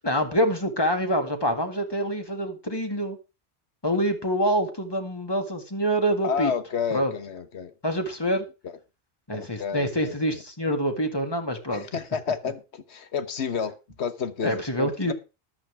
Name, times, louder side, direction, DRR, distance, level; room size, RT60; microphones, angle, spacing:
voice 1, 0.0-3.2 3.8-6.5 6.9-7.1 7.8-8.5 9.3-11.9 14.4-15.1, equal, 20° left, 2.1 m, -26 dB
voice 2, 6.2-7.7 8.6-8.8 9.3-10.4 11.7-15.1, left 6 dB, 85° left, 1.4 m, -31 dB
13.5 x 11.5 x 3.4 m
omnidirectional pair, 1.1 m